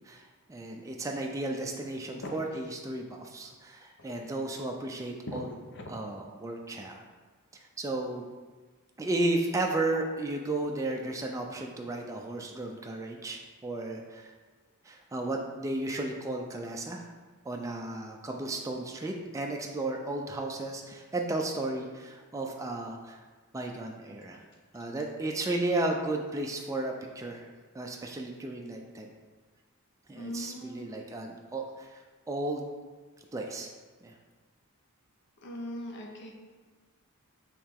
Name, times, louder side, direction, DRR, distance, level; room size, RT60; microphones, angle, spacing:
voice 1, 0.0-5.5 5.9-7.0 7.8-8.2 9.0-14.3 14.8-17.1 17.5-23.2 23.5-24.4 24.7-27.5 27.7-29.1 30.1-32.6 33.3-33.7 34.0-34.1, right 2 dB, 15° right, 1 dB, 0.3 m, -34 dB
voice 2, 5.3-5.9 30.1-30.9 35.4-36.3, left 1 dB, 55° left, 1 dB, 0.6 m, -40 dB
4.8 x 3.2 x 3.5 m, 1.4 s
head